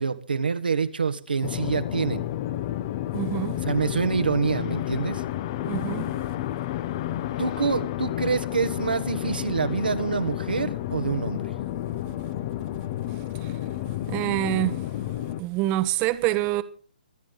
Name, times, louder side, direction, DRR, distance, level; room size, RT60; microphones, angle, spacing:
voice 1, 0.0-2.3 3.6-5.2 7.4-11.5, right 5 dB, 80° right, 1.4 m, -26 dB
sound 1, 1.4-15.4, left 13 dB, 35° left, 0.7 m, -31 dB
voice 2, 3.1-3.6 5.6-6.1 13.4-13.5 14.1-14.8 15.4-16.6, right 16 dB, 25° right, 1.0 m, -26 dB
24.5 x 9.0 x 3.9 m
hypercardioid pair, 140°, 5 cm